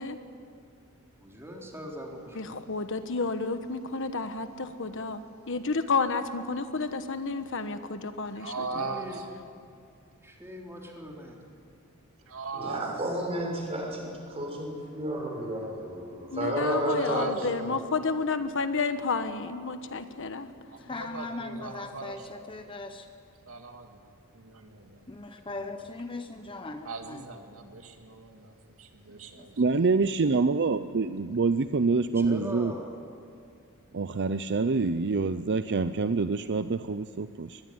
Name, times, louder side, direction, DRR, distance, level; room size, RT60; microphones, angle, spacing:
voice 1, 1.2-2.7 8.4-9.2 10.2-11.4 32.2-32.9, equal, 10° right, -1 dB, 3.8 m, -41 dB
voice 2, 2.3-8.7 16.3-20.5, left 4 dB, 60° left, 9 dB, 1.2 m, -31 dB
voice 3, 8.3-9.3 12.3-13.0 17.0-17.5 20.7-22.2 23.5-25.0 25.5-25.6 26.9-29.6, right 4 dB, 70° right, 5 dB, 2.1 m, -39 dB
voice 4, 12.5-17.8, right 1 dB, 25° right, -1 dB, 6.5 m, -32 dB
voice 5, 20.9-23.1 25.1-27.3 29.3-29.8, left 2 dB, 25° left, 7 dB, 1.0 m, -39 dB
voice 6, 29.6-32.7 33.9-37.6, right 4 dB, 50° right, 11 dB, 0.5 m, -26 dB
24.0 x 20.5 x 9.6 m, 2.4 s
head